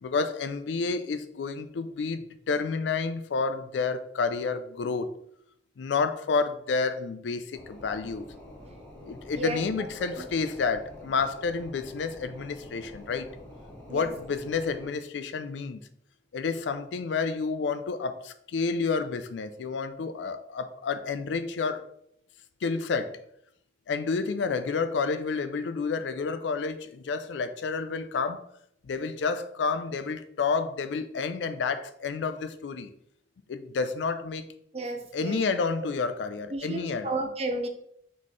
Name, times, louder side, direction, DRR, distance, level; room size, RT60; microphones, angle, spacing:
voice 1, 0.0-5.1 5.8-8.3 9.0-13.3 13.9-15.8 16.3-21.9 22.6-23.2 23.9-28.4 28.8-32.9 33.5-34.4 35.1-37.2, left 4 dB, 80° left, 0.4 m, -30 dB
sound 1, 7.5-14.9, left 1 dB, 5° left, 1.3 m, -47 dB
voice 2, 34.7-35.4 36.5-37.7, right 2 dB, 35° right, 0.5 m, -32 dB
3.9 x 3.7 x 3.1 m
head